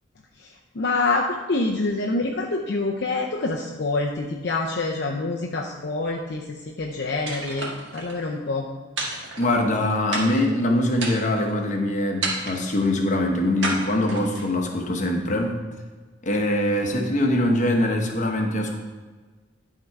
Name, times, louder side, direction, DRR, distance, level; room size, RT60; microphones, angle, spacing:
voice 1, 0.8-8.7, left 3 dB, 55° left, 0 dB, 0.5 m, -26 dB
sound 1, 7.3-8.2 9.0-9.8 10.1-10.6 11.0-11.5 12.2-12.8 13.6-14.5, right 2 dB, 60° right, 1.7 m, -31 dB
voice 2, 9.4-15.6 16.2-18.8, left 1 dB, 35° left, 2 dB, 0.9 m, -23 dB
11.5 x 3.8 x 4.6 m, 1.4 s
head